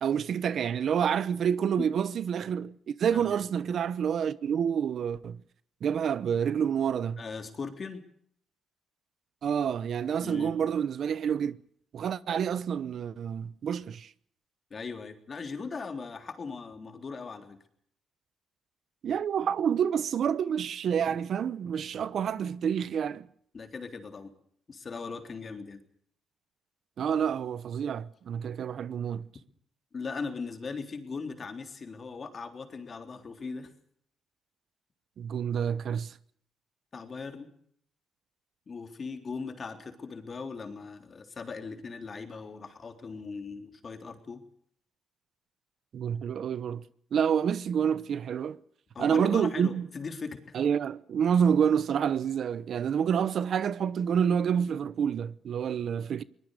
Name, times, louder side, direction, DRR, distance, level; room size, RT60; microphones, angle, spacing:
voice 1, 0.0-5.4 5.8-7.2 9.4-11.6 11.9-14.1 19.0-23.3 27.0-29.3 35.2-36.1 45.9-46.8 47.1-48.6 49.0-49.9 50.5-56.2, right 8 dB, 60° right, 0.9 m, -28 dB
voice 2, 7.2-8.0 10.2-10.5 14.7-17.6 23.5-24.3 24.7-25.8 29.9-33.7 36.9-37.5 38.7-44.4 48.9-50.5, left 4 dB, 40° left, 3.7 m, -39 dB
23.0 x 20.5 x 6.7 m
cardioid pair, 100°, 0 cm